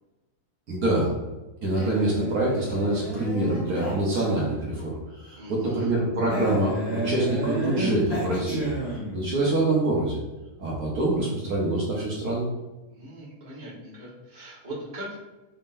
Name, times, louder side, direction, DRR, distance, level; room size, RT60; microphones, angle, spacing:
voice 1, 0.7-1.1 1.6-10.2 10.6-12.5, right 2 dB, 65° right, -4 dB, 1.4 m, -25 dB
Male speech man speaking, 1.7-4.7 6.3-9.3, equal, 75° left, 2.2 m, -32 dB
voice 2, 5.4-5.9 12.9-15.1, right 1 dB, 30° right, -7 dB, 1.4 m, -40 dB
5.3 x 3.6 x 2.6 m, 1.1 s
omnidirectional pair, 1.7 m